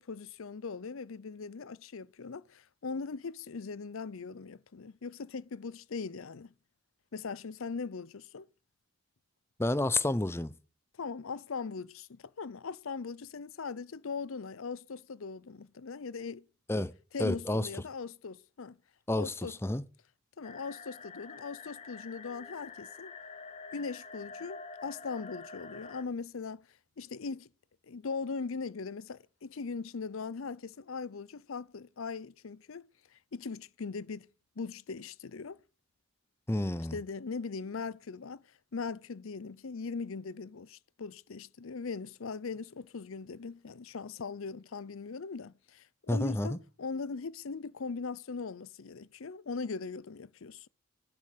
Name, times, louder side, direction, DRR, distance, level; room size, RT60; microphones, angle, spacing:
voice 1, 0.0-6.5 7.1-8.5 11.0-16.4 17.1-18.8 19.1-19.5 20.4-23.1 23.7-26.7 27.0-27.5 27.8-34.3 34.6-35.6 36.9-38.4 38.7-50.7, left 4 dB, 80° left, 0.6 m, -40 dB
voice 2, 9.6-10.5 16.7-16.9 17.2-17.7 19.1-19.8 36.5-37.0 46.1-46.6, left 1 dB, 10° left, 0.5 m, -30 dB
sound 1, 20.4-26.0, left 4 dB, 30° left, 1.0 m, -47 dB
10.5 x 10.5 x 6.7 m
head